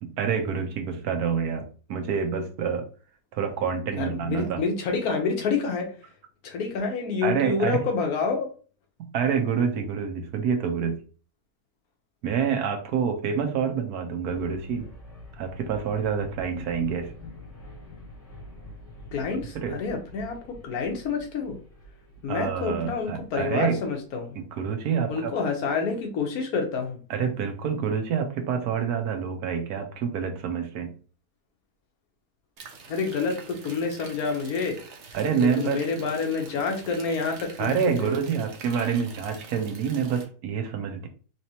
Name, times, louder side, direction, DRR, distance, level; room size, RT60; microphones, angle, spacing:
voice 1, 0.0-2.9 3.3-4.6 7.2-7.8 9.1-11.0 12.2-14.9 15.4-17.1 19.5-19.8 22.3-23.8 24.4-25.3 27.1-31.0 35.1-35.8 37.6-41.1, right 7 dB, 80° right, 6 dB, 1.2 m, -27 dB
voice 2, 4.0-5.9 6.4-8.5 19.1-21.6 22.2-24.4 25.1-27.0 32.9-34.8 35.4-38.1, left 5 dB, 75° left, 3 dB, 1.3 m, -28 dB
sound 1, 14.2-24.2, left 1 dB, ahead, 1.7 m, -46 dB
sound 2, 32.6-40.2, right 5 dB, 55° right, 0.9 m, -46 dB
4.1 x 3.1 x 2.8 m, 0.38 s
omnidirectional pair, 1.6 m